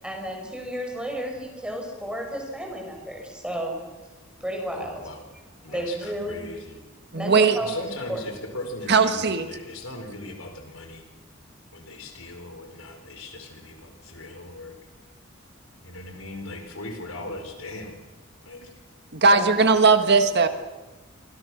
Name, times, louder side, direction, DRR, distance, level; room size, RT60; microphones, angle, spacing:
voice 1, 0.0-3.8 4.4-5.0 5.7-6.4 7.1-8.2 19.3-19.5, right 1 dB, 5° right, 2 dB, 6.2 m, -32 dB
voice 2, 4.7-5.2 5.6-6.8 7.6-11.1 11.7-14.7 15.8-18.0 18.4-18.7, left 2 dB, 80° left, 5 dB, 4.9 m, -38 dB
voice 3, 7.1-7.6 8.9-9.5 19.1-20.5, right 4 dB, 55° right, 8 dB, 1.6 m, -18 dB
28.5 x 24.5 x 6.4 m, 1.1 s
head